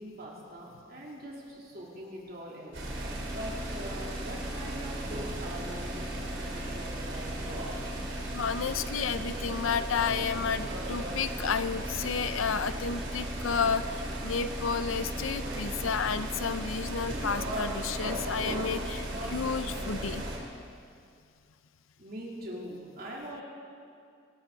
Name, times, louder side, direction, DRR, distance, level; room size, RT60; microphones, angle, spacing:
voice 1, 0.0-3.1 3.3-7.7 22.0-23.4, equal, 50° right, -4 dB, 3.4 m, -43 dB
sound 1, 2.7-20.4, right 1 dB, 65° right, 3.6 m, -35 dB
voice 2, 8.3-13.8 14.2-20.2, left 6 dB, 90° left, 12 dB, 0.6 m, -31 dB
27.0 x 13.0 x 4.0 m, 2.4 s
head